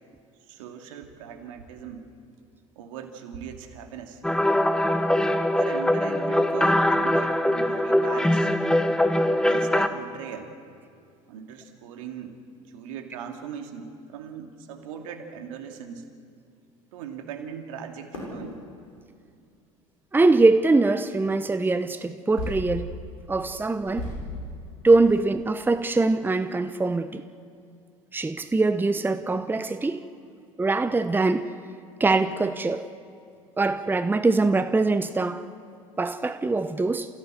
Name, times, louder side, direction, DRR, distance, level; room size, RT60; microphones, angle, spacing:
voice 1, 0.5-2.1 2.8-4.2 5.6-8.5 9.4-10.5 11.3-12.4 12.7-16.1 16.9-18.6, right 7 dB, 70° right, 2.5 m, -39 dB
sound 1, 4.2-9.9, left 1 dB, 5° left, 1.3 m, -22 dB
sound 2, 18.1-18.4 19.6-19.7 21.0-21.1 22.4-22.9 23.2-23.3 23.8-24.4 25.0-25.1 25.4-25.5 25.8-26.1, left 1 dB, 85° left, 7.0 m, -34 dB
voice 2, 20.1-22.9 23.3-24.1 24.8-27.2 28.1-30.0 30.6-31.5 32.0-32.9 33.6-35.4 36.0-37.1, right 3 dB, 10° right, 0.9 m, -22 dB
28.5 x 16.0 x 7.7 m
hypercardioid pair, 75°, 17 cm